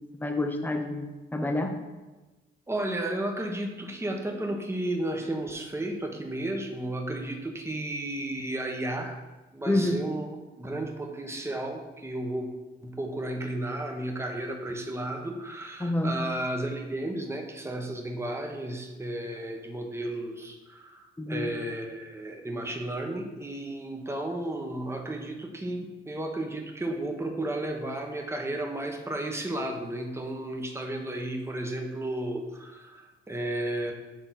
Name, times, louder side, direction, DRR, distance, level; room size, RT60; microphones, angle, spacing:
voice 1, 0.2-1.1 1.3-1.7 9.7-9.9 15.8-16.2 21.2-21.5, left 1 dB, 10° left, 4 dB, 0.8 m, -27 dB
voice 2, 2.7-9.2 9.5-10.3 10.6-12.5 12.8-33.9, right 1 dB, 15° right, 3 dB, 1.1 m, -33 dB
6.6 x 3.9 x 5.8 m, 1.2 s
cardioid pair, 90°, 20 cm